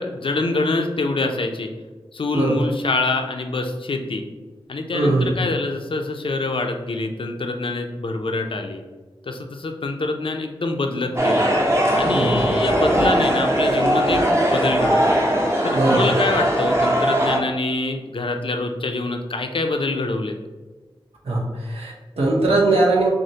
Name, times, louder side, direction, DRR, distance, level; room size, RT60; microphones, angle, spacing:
voice 1, 0.0-1.7 2.1-4.2 4.7-8.8 9.3-11.5 11.9-15.2 15.6-20.4, left 3 dB, 60° left, 5 dB, 0.5 m, -25 dB
voice 2, 2.3-2.6 4.9-5.4 12.1-12.5 15.7-16.1 21.2-23.1, right 2 dB, 90° right, -2 dB, 0.8 m, -20 dB
sound 1, 11.2-17.4, right 1 dB, 30° right, 0.7 m, -20 dB
6.3 x 2.1 x 2.8 m, 1.3 s
wide cardioid pair, 60°, 10 cm